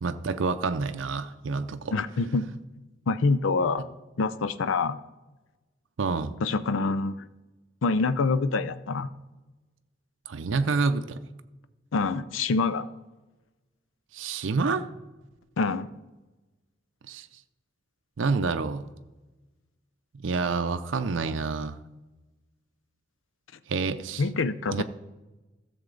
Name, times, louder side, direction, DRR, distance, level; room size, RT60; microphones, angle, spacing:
voice 1, 0.0-1.9 6.0-6.3 10.3-11.2 14.1-14.9 17.1-17.3 18.2-18.9 20.2-21.8 23.7-24.2 24.7-24.8, right 4 dB, 80° right, 9 dB, 0.5 m, -28 dB
voice 2, 1.9-2.5 3.1-3.9 4.2-5.0 6.4-7.2 7.8-9.1 11.9-12.9 15.6-15.9 24.2-24.8, left 4 dB, 90° left, 13 dB, 0.5 m, -26 dB
14.0 x 6.9 x 3.9 m, 1.1 s
head